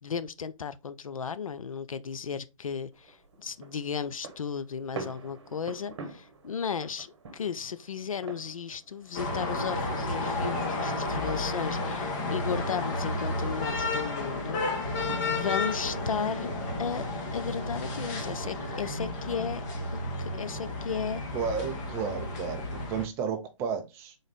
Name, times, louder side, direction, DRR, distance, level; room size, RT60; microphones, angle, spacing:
voice 1, 0.0-7.1 7.3-15.0 15.2-16.5 16.8-17.1 17.3-19.6 19.9-21.2, left 6 dB, 85° left, 0.4 m, -35 dB
sound 1, 2.9-19.2, right 4 dB, 55° right, 0.9 m, -48 dB
sound 2, 9.1-23.1, left 2 dB, 35° left, 1.0 m, -32 dB
voice 2, 21.3-24.2, right 6 dB, 15° right, 0.4 m, -32 dB
3.9 x 2.4 x 3.4 m
figure-of-eight pair, 135°, 17 cm